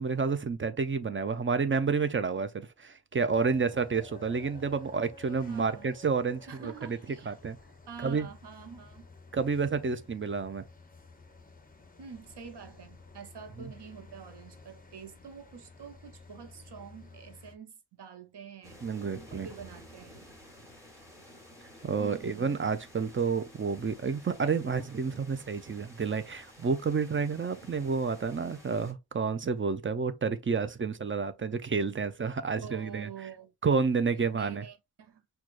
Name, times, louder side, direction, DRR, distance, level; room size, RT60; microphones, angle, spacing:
voice 1, 0.0-7.0 7.3-7.6 8.0-8.3 9.3-10.6 13.6-13.7 18.8-19.5 21.6-33.1 33.6-34.6, right 5 dB, 30° right, 0.4 m, -30 dB
sound 1, 3.3-17.6, left 3 dB, 20° left, 0.7 m, -53 dB
voice 2, 5.4-5.9 6.5-7.4 7.9-9.1 12.0-18.8 19.3-20.2 22.0-22.7 32.6-33.5 34.3-35.2, right 7 dB, 85° right, 0.8 m, -47 dB
sound 2, 18.6-28.9, left 1 dB, 10° right, 1.3 m, -52 dB
6.0 x 2.3 x 2.4 m
wide cardioid pair, 85°, 39 cm